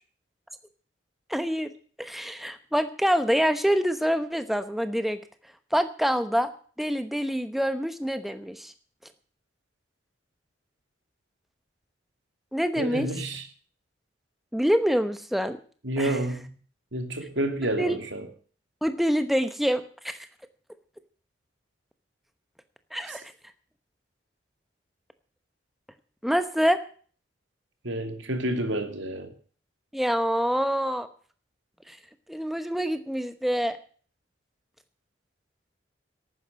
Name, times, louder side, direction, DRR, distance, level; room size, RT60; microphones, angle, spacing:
voice 1, 1.3-1.7 2.0-5.2 5.7-6.5 6.8-8.7 12.5-13.1 14.5-15.6 16.0-16.2 17.8-18.0 18.8-20.3 22.9-23.3 26.2-26.8 29.9-31.1 31.9-32.0 32.3-33.8, equal, ahead, 9 dB, 1.0 m, -26 dB
voice 2, 12.8-13.5 15.8-16.5 16.9-18.3 23.1-23.2 27.8-29.3, right 1 dB, 80° right, 6 dB, 2.7 m, -29 dB
12.0 x 9.5 x 8.6 m, 0.43 s
head